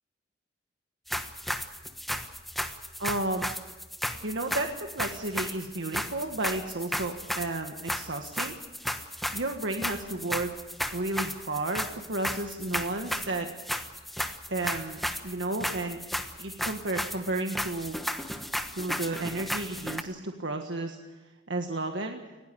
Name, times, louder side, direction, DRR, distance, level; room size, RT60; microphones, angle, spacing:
sound 1, 1.1-20.0, equal, ahead, 1.2 m, -34 dB
voice 1, 3.0-3.5 4.2-8.5 9.3-10.5 10.9-13.5 14.5-16.0 16.4-18.0 18.7-21.0 21.5-22.2, right 2 dB, 80° right, 4 dB, 1.5 m, -32 dB
19.5 x 18.0 x 8.5 m, 1.1 s
head